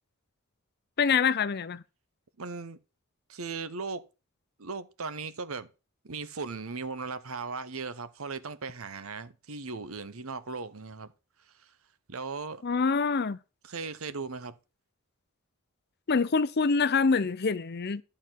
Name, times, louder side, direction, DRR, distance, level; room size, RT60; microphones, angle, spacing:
voice 1, 1.0-1.8 12.6-13.4 16.1-18.0, left 5 dB, 50° left, 0.6 m, -25 dB
voice 2, 2.4-2.8 3.3-4.0 4.6-5.7 6.0-11.1 11.6-11.7 12.1-12.6 13.6-14.6, right 4 dB, 80° right, 1.0 m, -37 dB
11.5 x 4.4 x 7.4 m
head